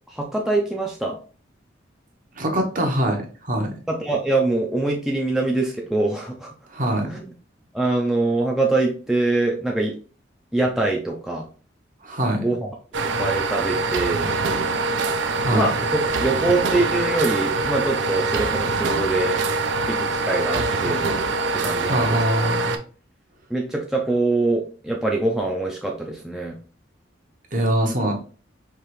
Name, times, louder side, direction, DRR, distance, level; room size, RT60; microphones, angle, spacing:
voice 1, 0.1-1.2 3.9-6.5 7.0-7.3 7.7-9.9 10.5-11.5 12.4-14.3 15.5-19.4 19.9-21.1 21.5-22.2 23.5-26.6 27.8-27.9, right 2 dB, ahead, -1 dB, 0.4 m, -24 dB
voice 2, 2.4-3.7 6.7-7.1 12.0-12.4 15.2-15.7 21.8-22.8 27.5-28.1, right 1 dB, 40° right, 3 dB, 0.9 m, -23 dB
sound 1, 12.9-22.8, right 3 dB, 70° right, 0.5 m, -24 dB
4.7 x 2.9 x 3.1 m, 0.39 s
head